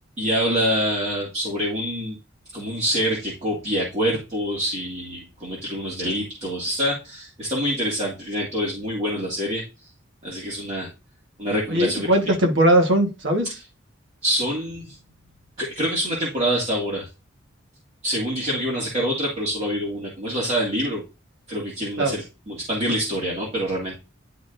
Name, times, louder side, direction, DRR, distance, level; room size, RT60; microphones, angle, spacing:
voice 1, 0.2-2.2 2.5-9.6 10.2-10.9 11.4-12.3 13.4-13.6 14.2-15.0 15.6-17.1 18.0-21.0 21.5-24.0, equal, 35° right, 2.0 m, -26 dB
voice 2, 11.7-13.5 22.0-22.2, right 1 dB, 65° right, 1.4 m, -19 dB
11.0 x 4.2 x 2.6 m
head